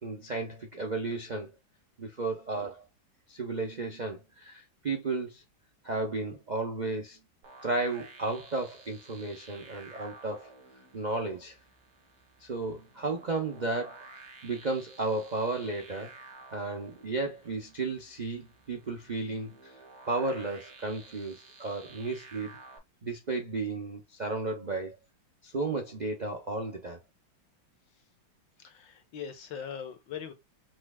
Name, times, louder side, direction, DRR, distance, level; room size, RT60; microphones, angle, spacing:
voice 1, 0.0-1.5 2.0-2.8 3.3-5.4 5.8-7.2 7.6-10.5 10.9-11.6 12.4-16.1 16.5-19.7 20.1-22.6 23.0-25.0 25.4-27.0, right 3 dB, 90° right, 0.4 m, -33 dB
sound 1, 7.4-22.8, right 3 dB, 55° right, 1.7 m, -53 dB
voice 2, 28.6-30.3, left 8 dB, 70° left, 1.8 m, -40 dB
6.0 x 3.1 x 2.2 m
omnidirectional pair, 2.1 m